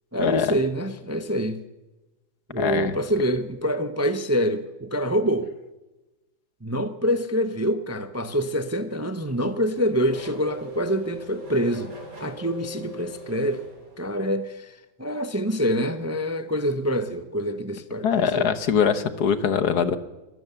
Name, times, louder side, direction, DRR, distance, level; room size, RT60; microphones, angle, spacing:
voice 1, 0.1-1.6 2.5-5.5 6.6-11.9 12.2-13.6 14.0-18.5, equal, 15° right, 0.7 m, -26 dB
voice 2, 2.6-2.9 18.0-20.0, left 7 dB, 70° left, 1.7 m, -22 dB
Race car auto racing / Accelerating revving vroom, 8.9-14.4, equal, 55° right, 4.5 m, -41 dB
24.0 x 17.0 x 7.0 m
omnidirectional pair, 1.8 m